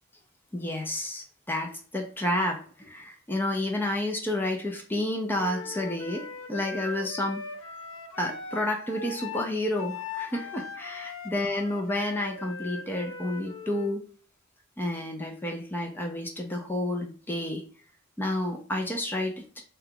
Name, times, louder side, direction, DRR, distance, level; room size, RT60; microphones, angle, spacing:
voice 1, 0.5-7.4 8.2-14.0 14.8-17.6 18.2-19.6, left 1 dB, 10° left, 2 dB, 0.4 m, -30 dB
Wind instrument woodwind instrument, 5.4-13.9, left 4 dB, 90° left, 0.6 m, -39 dB
2.9 x 2.2 x 3.5 m, 0.43 s
head